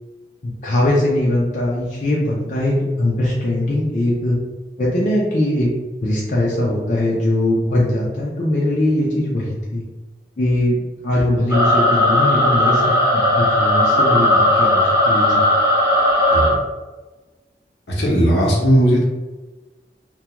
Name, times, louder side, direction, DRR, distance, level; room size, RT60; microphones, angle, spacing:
voice 1, 0.4-4.4 4.8-5.7 6.0-9.8 10.4-10.8 11.0-15.4, left 1 dB, 45° left, -6 dB, 0.5 m, -20 dB
sound 1, 11.5-16.5, left 1 dB, 20° right, 0.7 m, -16 dB
voice 2, 17.9-19.1, equal, 80° left, -4 dB, 0.8 m, -16 dB
2.3 x 2.3 x 2.9 m, 1.2 s
head